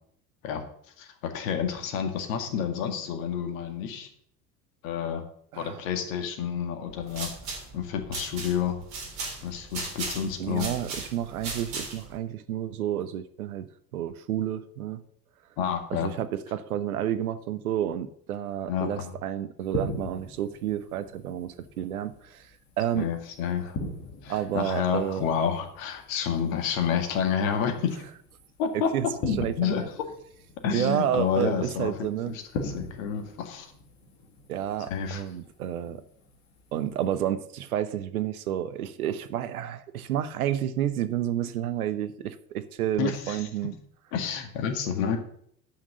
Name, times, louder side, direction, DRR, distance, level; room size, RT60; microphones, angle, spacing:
voice 1, 1.0-4.1 4.8-5.3 5.5-7.3 7.7-8.8 9.4-10.7 15.6-16.1 18.7-19.1 22.9-23.8 24.2-28.1 28.6-28.9 29.2-29.8 30.6-33.7 34.8-35.2 43.0-43.7 44.1-45.2, left 7 dB, 55° left, 6 dB, 1.9 m, -29 dB
voice 2, 5.5-5.9 10.4-13.7 13.9-15.0 15.9-22.5 22.8-23.1 24.3-25.3 28.7-29.9 30.7-32.3 34.5-36.0 36.7-43.7, right 11 dB, 65° right, 13 dB, 0.9 m, -30 dB
sound 1, 6.9-12.2, right 4 dB, 45° right, 4.1 m, -37 dB
sound 2, 19.6-37.2, left 2 dB, 35° left, 2.2 m, -41 dB
10.5 x 6.2 x 6.7 m, 0.66 s
figure-of-eight pair, 75°, 48 cm